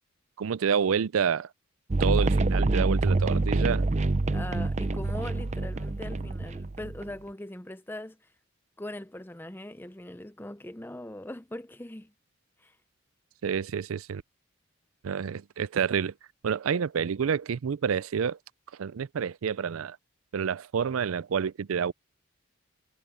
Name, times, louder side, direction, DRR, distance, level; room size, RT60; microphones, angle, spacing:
voice 1, 0.4-1.5 2.0-3.9 13.4-14.2 15.0-16.1 16.4-18.4 18.8-20.0 20.3-21.9, right 7 dB, 85° right, 0.4 m, -28 dB
sound 1, 1.9-7.1, right 2 dB, 35° right, 0.5 m, -26 dB
voice 2, 4.3-8.2 8.8-12.1 12.6-12.8, left 1 dB, 10° left, 0.6 m, -40 dB
head